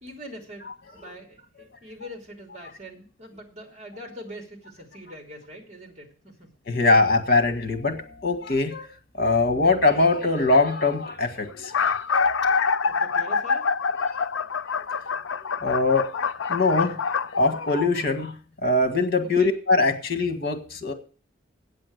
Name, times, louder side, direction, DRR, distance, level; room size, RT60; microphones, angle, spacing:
voice 1, 0.0-6.5 12.8-13.7 19.4-19.5, equal, 40° right, 2.7 m, -43 dB
voice 2, 6.7-8.9 9.1-12.4 14.1-14.2 14.7-15.1 15.6-17.0 17.4-18.3 18.6-20.9, left 3 dB, 55° left, 1.7 m, -22 dB
sound 1, 9.6-9.9 10.8-10.9 11.1-11.2 11.5-17.9, left 5 dB, 80° left, 0.5 m, -26 dB
8.7 x 7.6 x 7.9 m
head